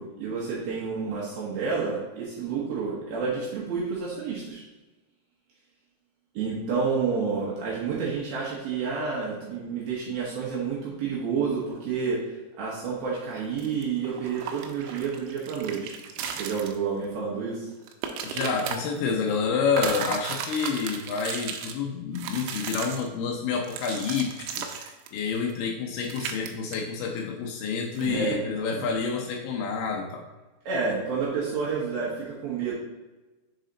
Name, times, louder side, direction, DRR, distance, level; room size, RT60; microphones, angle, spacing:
voice 1, 0.0-4.6 6.3-16.0 16.4-17.7 28.0-28.9 30.7-32.7, right 5 dB, 70° right, -6 dB, 2.5 m, -30 dB
sound 1, 13.6-16.8 17.0-17.1 17.7-18.8 19.7-21.7 22.1-23.1 23.6-25.7 26.0-26.5 26.7-26.8 28.0-28.1, right 7 dB, 85° right, 2.9 m, -35 dB
voice 2, 18.2-30.2, left 5 dB, 85° left, 0 dB, 2.2 m, -29 dB
6.6 x 4.1 x 3.9 m, 1.1 s
omnidirectional pair, 5.4 m